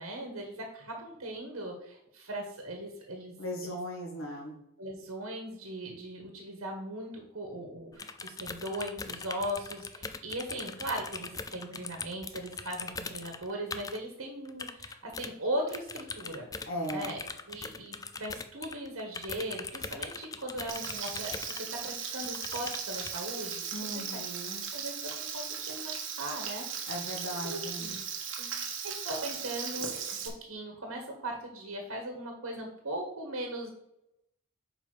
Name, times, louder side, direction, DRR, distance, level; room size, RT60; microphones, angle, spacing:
voice 1, 0.0-3.3 3.6-3.8 4.8-16.5 16.9-17.2 17.5-23.7 23.9-24.0 24.7-26.7 27.4-28.0 28.4-28.6 29.0-33.7, right 1 dB, 80° right, 2 dB, 1.4 m, -39 dB
voice 2, 3.4-4.5 16.7-17.1 23.7-24.7 26.9-27.9, equal, 80° left, -1 dB, 2.3 m, -37 dB
sound 1, 7.9-14.0 14.4-15.3 15.7-21.9 22.2-23.2, left 4 dB, 15° left, 0.3 m, -41 dB
Frying (food), 20.7-30.3, right 7 dB, 60° right, 1.2 m, -37 dB
6.3 x 5.0 x 4.9 m, 0.81 s
head